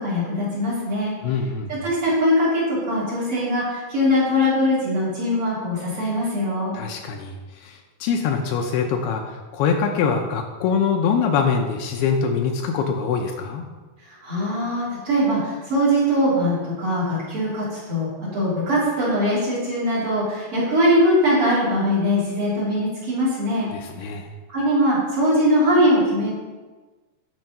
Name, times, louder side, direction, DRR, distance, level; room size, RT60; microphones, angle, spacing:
voice 1, 0.0-1.1 1.7-6.7 14.0-23.7 24.5-26.3, equal, 35° right, -7 dB, 4.2 m, -21 dB
voice 2, 1.2-1.7 6.7-7.3 7.6-13.6 23.7-24.3, left 6 dB, 80° left, 3 dB, 2.6 m, -23 dB
12.5 x 5.5 x 5.5 m, 1.3 s
omnidirectional pair, 4.8 m